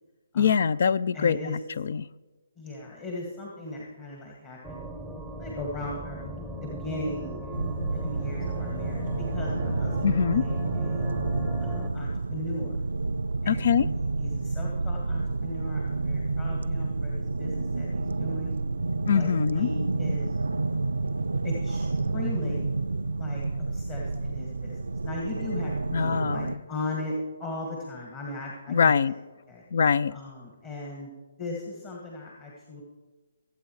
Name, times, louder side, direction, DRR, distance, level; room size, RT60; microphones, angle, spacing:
voice 1, 0.3-2.1 10.0-10.4 13.5-13.9 19.1-19.7 25.9-26.6 28.7-29.1 29.7-30.1, left 6 dB, 60° left, 19 dB, 0.4 m, -23 dB
voice 2, 1.1-1.6 2.6-4.8 5.4-7.5 7.9-11.1 11.6-12.7 13.4-18.5 19.1-20.4 21.4-22.7 23.1-23.4 23.7-29.2 29.5-29.6 30.1-31.1 31.4-32.8, left 2 dB, 25° left, -2 dB, 2.0 m, -38 dB
sound 1, 4.6-11.9, right 1 dB, ahead, 0.8 m, -37 dB
sound 2, 7.5-26.6, right 3 dB, 85° right, 0.4 m, -29 dB
21.5 x 8.4 x 3.2 m, 1.3 s
hypercardioid pair, 150°, 0 cm